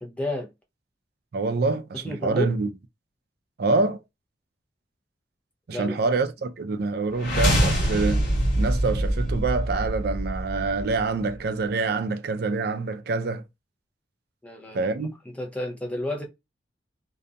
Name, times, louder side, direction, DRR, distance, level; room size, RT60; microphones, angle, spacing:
voice 1, 0.0-0.5 2.0-2.5 5.7-6.0 14.4-14.9 15.4-16.3, left 1 dB, 5° left, 0.6 m, -31 dB
voice 2, 1.3-2.7 3.6-4.0 5.7-8.3 8.6-13.4 14.7-15.1, right 3 dB, 55° right, 0.4 m, -26 dB
sound 1, 7.1-11.1, right 1 dB, 60° left, 1.8 m, -24 dB
2.7 x 2.5 x 2.2 m
head